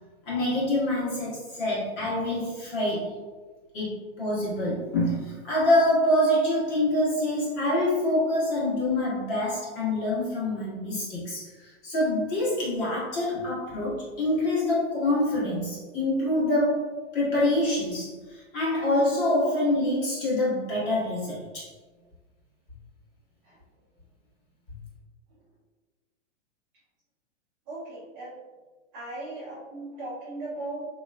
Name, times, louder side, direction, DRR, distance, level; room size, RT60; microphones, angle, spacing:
voice 1, 0.3-3.2 3.7-21.7, left 1 dB, 30° left, -7 dB, 1.3 m, -26 dB
voice 2, 27.7-28.3 28.9-30.9, right 2 dB, 20° right, -9 dB, 0.5 m, -37 dB
3.7 x 2.9 x 2.2 m, 1.3 s
hypercardioid pair, 155°, 36 cm